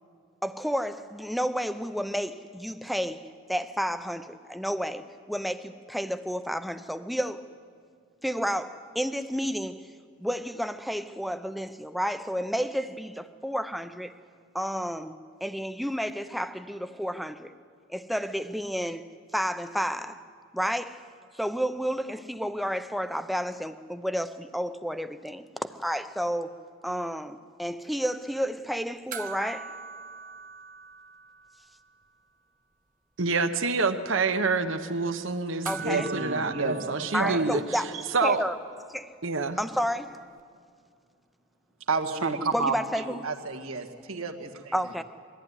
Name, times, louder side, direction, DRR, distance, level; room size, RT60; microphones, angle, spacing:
voice 1, 0.4-7.4 8.2-9.9 10.2-14.1 14.5-17.5 17.9-19.0 19.3-20.2 20.5-21.0 21.3-26.5 26.8-29.7 35.6-36.1 37.1-37.9 38.2-38.6 38.9-39.2 39.6-40.3 42.5-43.3 44.7-45.0, equal, ahead, 0.6 m, -31 dB
sound 1, 29.1-31.8 32.0-32.1 35.6-38.2 40.4-40.5, right 6 dB, 40° right, 0.9 m, -42 dB
voice 2, 33.2-37.6 38.1-38.4 39.2-39.6, right 4 dB, 65° right, 1.0 m, -27 dB
voice 3, 35.7-37.5 37.9-38.0 41.9-44.7, right 4 dB, 85° right, 1.8 m, -30 dB
22.0 x 14.5 x 9.8 m
head